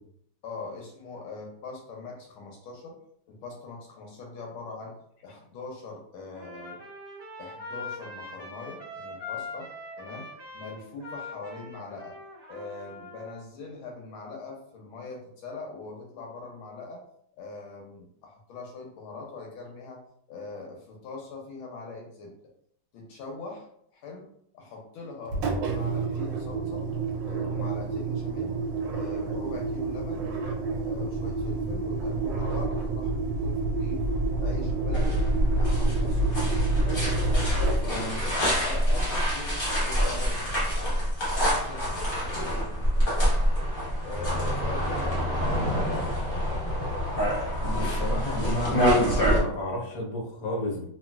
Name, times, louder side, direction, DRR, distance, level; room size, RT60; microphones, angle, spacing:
voice 1, 0.4-3.0 3.3-5.0 5.2-6.8 7.4-9.7 10.0-12.2 12.5-17.0 17.4-20.0 20.3-22.3 22.9-23.7 23.9-24.3 24.5-26.9 27.2-28.6 28.9-30.3 30.8-34.0 34.4-35.3 35.6-36.4 36.8-37.1 37.5-38.4 38.6-41.0 41.5-43.7 44.0-46.4, left 3 dB, 80° left, 0 dB, 1.4 m, -42 dB
Trumpet, 6.3-13.4, left 3 dB, 30° right, 0.9 m, -41 dB
Engine, 25.3-39.3, right 3 dB, 75° right, 1.1 m, -29 dB
sound 1, 34.9-49.4, equal, 35° left, 1.0 m, -26 dB
voice 2, 47.6-50.9, left 1 dB, 60° left, -1 dB, 1.0 m, -32 dB
2.9 x 2.8 x 2.3 m, 0.69 s
omnidirectional pair, 2.4 m